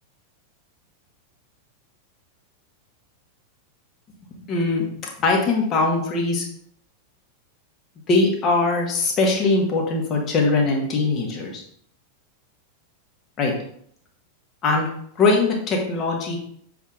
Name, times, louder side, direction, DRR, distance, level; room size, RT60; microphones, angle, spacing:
voice 1, 4.3-4.9 5.2-6.5 8.1-11.6 13.4-13.5 14.6-14.9 15.2-16.4, left 3 dB, 30° left, 0 dB, 1.6 m, -21 dB
7.1 x 3.6 x 3.8 m, 0.65 s
figure-of-eight pair, 90°, 0 cm